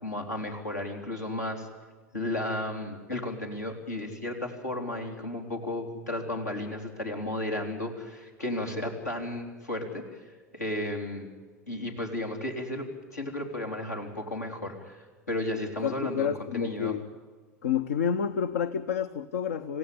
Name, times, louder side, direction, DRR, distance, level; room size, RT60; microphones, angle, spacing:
voice 1, 0.0-1.7 2.1-11.3 11.7-12.9 13.1-17.0, left 1 dB, 85° left, 1 dB, 3.7 m, -34 dB
voice 2, 15.8-17.1 17.6-19.8, left 8 dB, 65° left, 13 dB, 0.8 m, -29 dB
27.0 x 16.0 x 8.5 m, 1.5 s
figure-of-eight pair, 85°, 9 cm